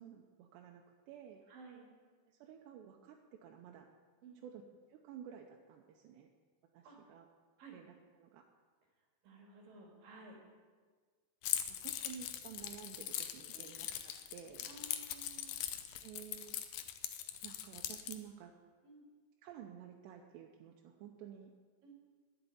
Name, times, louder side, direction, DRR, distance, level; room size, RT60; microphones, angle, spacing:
voice 1, 0.0-1.4 2.3-3.9 4.4-4.6 4.9-6.3 6.7-7.3 7.7-7.9 8.2-8.5 11.7-14.7 16.0-16.6 17.4-18.5 19.4-21.5, right 9 dB, 85° right, 1 dB, 3.0 m, -52 dB
voice 2, 1.5-1.9 4.2-4.4 6.8-7.0 7.6-7.8 9.0-10.4 13.5-13.7 14.7-16.0 18.8-19.1 21.8-21.9, right 3 dB, 60° right, 0 dB, 3.5 m, -56 dB
Keys jangling, 11.4-18.2, left 11 dB, 80° left, 2.0 m, -41 dB
11.0 x 8.0 x 9.6 m, 1.5 s
omnidirectional pair, 4.8 m